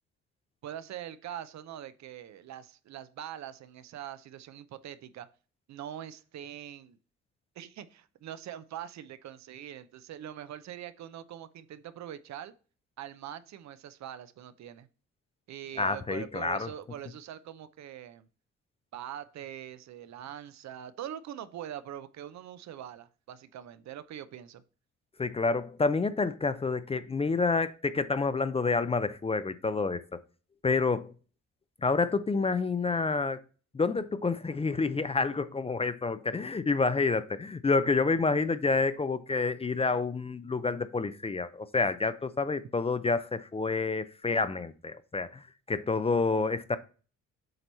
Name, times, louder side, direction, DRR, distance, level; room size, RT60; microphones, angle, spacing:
voice 1, 0.6-5.3 5.7-7.0 7.6-12.5 13.0-14.9 15.5-18.3 18.9-24.6, right 10 dB, 65° right, 0.6 m, -43 dB
voice 2, 15.8-16.7 25.2-30.2 30.6-31.1 31.8-33.4 33.7-46.8, left 4 dB, 20° left, 0.4 m, -28 dB
7.8 x 3.0 x 5.3 m
cardioid pair, 90°, 30 cm